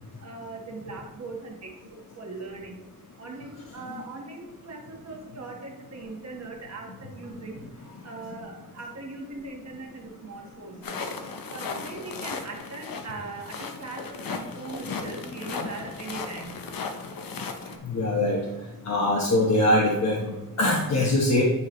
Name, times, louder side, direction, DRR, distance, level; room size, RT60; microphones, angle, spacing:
voice 1, 0.2-2.8 3.2-7.6 8.0-11.0 11.5-16.6 17.7-17.8, right 3 dB, 50° right, 0 dB, 1.4 m, -40 dB
sound 1, 10.8-17.8, left 4 dB, 80° left, 0.8 m, -36 dB
voice 2, 17.8-18.4 18.8-21.5, left 1 dB, 50° left, -3 dB, 1.0 m, -23 dB
9.3 x 4.8 x 3.1 m, 1.2 s
wide cardioid pair, 170°, 34 cm